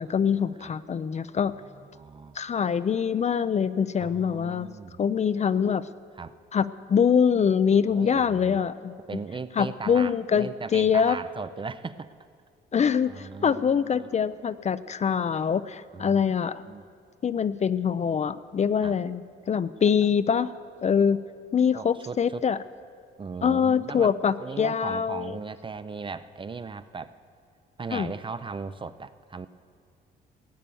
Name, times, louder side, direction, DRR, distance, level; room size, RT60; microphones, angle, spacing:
voice 1, 0.0-1.5 2.4-4.7 5.0-5.8 6.5-8.9 9.6-11.2 12.7-16.6 17.2-20.5 20.8-21.2 21.5-22.6 23.4-25.4 27.9-28.1, left 7 dB, 35° left, 14 dB, 0.4 m, -24 dB
voice 2, 1.4-2.4 4.0-5.0 6.2-6.3 7.9-8.6 9.1-12.1 13.1-14.1 15.9-16.2 16.7-16.9 18.8-19.0 21.7-22.4 23.2-24.1 24.4-27.2 27.8-29.5, right 4 dB, 25° right, 13 dB, 0.5 m, -38 dB
17.0 x 8.9 x 7.0 m, 2.2 s
cardioid pair, 90°, 20 cm